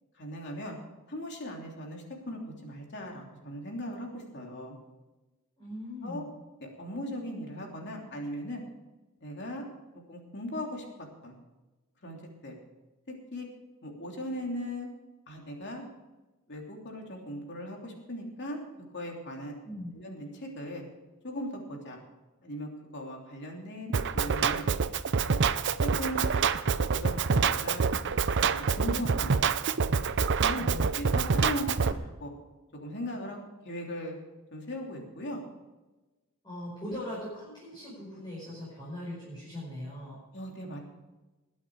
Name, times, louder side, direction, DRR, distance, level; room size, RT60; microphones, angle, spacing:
voice 1, 0.2-0.8 1.1-4.7 6.0-6.2 6.6-8.6 9.2-9.7 10.1-10.8 11.2-11.4 12.0-12.6 13.3-13.5 13.8-14.9 15.3-15.8 16.5-18.6 18.9-19.6 19.9-20.8 21.2-22.0 22.4-24.6 25.2-25.4 25.8-26.3 26.6-27.9 28.4-29.3 29.8-30.0 30.4-30.6 30.9-32.3 32.7-33.4 33.6-34.2 34.5-35.4 36.9-37.0 40.3-40.8, left 1 dB, 50° left, 0 dB, 3.1 m, -38 dB
voice 2, 5.6-6.3 19.6-19.9 30.6-30.9 36.4-40.2, left 1 dB, 20° left, -7 dB, 5.0 m, -40 dB
Drum kit, 23.9-31.9, right 5 dB, 55° right, 0.6 m, -26 dB
20.0 x 8.7 x 4.8 m, 1.1 s
head